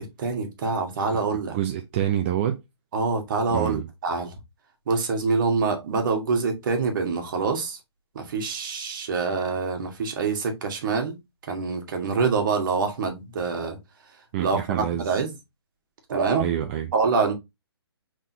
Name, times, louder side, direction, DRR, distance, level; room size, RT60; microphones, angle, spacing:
voice 1, 0.0-1.6 2.9-4.3 4.9-7.8 8.1-11.1 11.5-13.8 14.4-15.3 16.1-16.4 16.9-17.3, right 4 dB, 50° right, 1.5 m, -25 dB
voice 2, 1.5-2.6 3.5-3.8 14.3-15.2 16.4-16.9, right 10 dB, 25° right, 0.4 m, -27 dB
5.5 x 3.6 x 2.7 m
hypercardioid pair, 145°, 14 cm